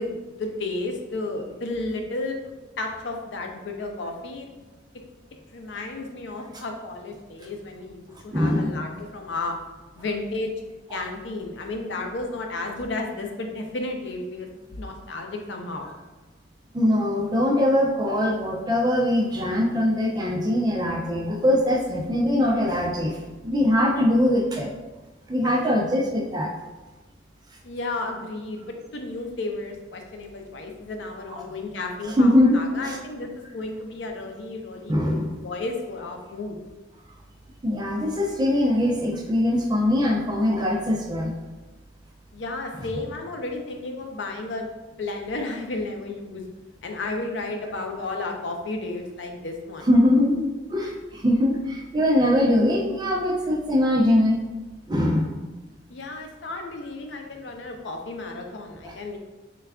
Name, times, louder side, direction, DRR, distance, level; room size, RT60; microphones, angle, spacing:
voice 1, 0.0-2.4 2.8-4.5 5.5-9.6 10.0-10.5 10.9-14.5 14.8-15.9 25.4-25.5 27.6-28.7 28.9-36.6 42.3-44.7 45.0-46.5 46.8-49.9 55.9-59.2, left 2 dB, 75° left, 3 dB, 0.5 m, -33 dB
voice 2, 8.3-8.8 10.9-11.0 16.7-24.7 25.3-26.5 31.3-31.4 32.2-33.0 34.9-35.3 37.6-41.3 49.9-54.4 54.9-55.4 58.8-58.9, left 1 dB, 20° right, 0 dB, 0.4 m, -22 dB
3.3 x 2.3 x 3.5 m, 1.1 s
head